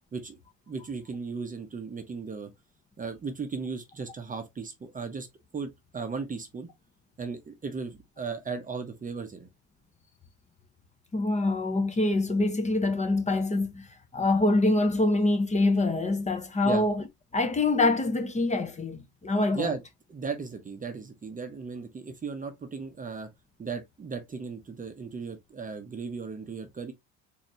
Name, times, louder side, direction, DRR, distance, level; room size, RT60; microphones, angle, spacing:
voice 1, 0.7-2.5 3.0-5.3 5.5-6.7 7.2-9.5 16.6-16.8 19.5-19.8 20.1-23.3 23.6-26.9, right 5 dB, 25° right, 0.8 m, -36 dB
voice 2, 11.1-13.9 14.1-17.0 17.3-19.7, left 2 dB, 20° left, 0.9 m, -25 dB
4.1 x 2.8 x 3.0 m
cardioid pair, 100°, 34 cm